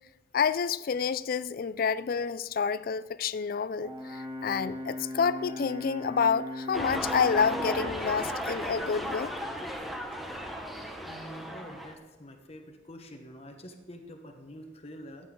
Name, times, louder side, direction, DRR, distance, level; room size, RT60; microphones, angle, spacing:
voice 1, 0.3-9.3, left 6 dB, 55° left, 0.4 m, -28 dB
Brass instrument, 3.8-8.0, left 1 dB, 25° right, 2.0 m, -38 dB
sound 1, 6.7-11.9, equal, ahead, 1.0 m, -35 dB
voice 2, 11.0-15.3, equal, 35° left, 1.1 m, -46 dB
15.0 x 9.1 x 3.8 m
head